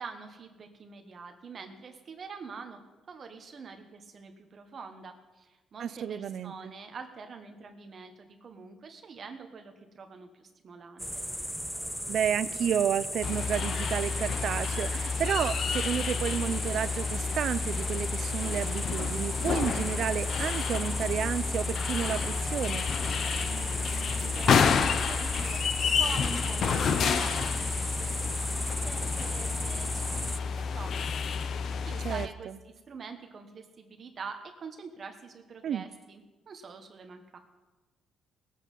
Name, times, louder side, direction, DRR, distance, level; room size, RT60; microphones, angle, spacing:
voice 1, 0.0-2.8 3.1-11.2 23.3-30.9 31.2-32.5 32.9-36.2 36.5-37.4, right 5 dB, 45° right, 5 dB, 1.2 m, -45 dB
voice 2, 5.8-6.7 12.1-22.9 32.0-32.3 35.6-35.9, right 9 dB, 60° right, 16 dB, 0.5 m, -31 dB
sound 1, 11.0-30.4, equal, ahead, 0.3 m, -36 dB
sound 2, 13.2-32.3, left 6 dB, 55° left, 0.7 m, -30 dB
18.5 x 8.4 x 5.5 m, 1.2 s
cardioid pair, 105°, 0 cm